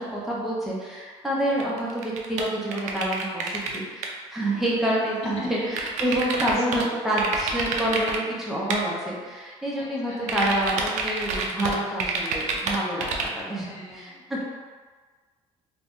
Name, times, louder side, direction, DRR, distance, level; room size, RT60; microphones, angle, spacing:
voice 1, 0.0-13.7 13.9-14.4, right 1 dB, ahead, -6 dB, 0.6 m, -28 dB
sound 1, 1.5-3.8 4.0-4.1 5.8-6.8 7.2-8.2 8.7-8.8 10.3-13.4, right 4 dB, 70° right, 0.4 m, -28 dB
Bowed string instrument, 4.3-8.4, left 3 dB, 75° left, 1.0 m, -48 dB
voice 2, 4.9-5.7 6.1-6.8 7.5-7.8 9.8-10.5 13.5-14.4, left 3 dB, 55° left, -2 dB, 0.6 m, -41 dB
2.5 x 2.2 x 3.5 m, 1.5 s
cardioid pair, 165°, 12 cm